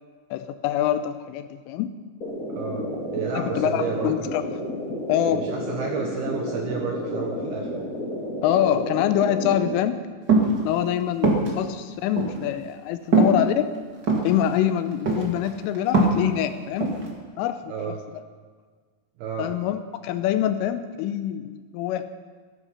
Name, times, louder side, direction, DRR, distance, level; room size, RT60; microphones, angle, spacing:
voice 1, 0.3-1.9 3.4-4.4 5.1-5.4 8.4-10.0 10.6-13.6 14.2-16.9 17.4-18.2 19.4-22.0, left 11 dB, 80° left, 10 dB, 3.1 m, -25 dB
sound 1, 2.2-9.7, equal, 25° left, 2.5 m, -31 dB
voice 2, 2.5-4.1 5.3-7.7 17.7-18.0 19.2-19.5, right 5 dB, 75° right, 1 dB, 2.4 m, -31 dB
sound 2, 10.3-10.6 11.2-11.5 12.2-12.3 13.1-13.3 14.0-14.3 15.1-15.5 15.7-16.3 16.8-17.0, right 3 dB, 50° right, 1.3 m, -19 dB
16.0 x 14.5 x 5.6 m, 1.5 s
omnidirectional pair, 5.9 m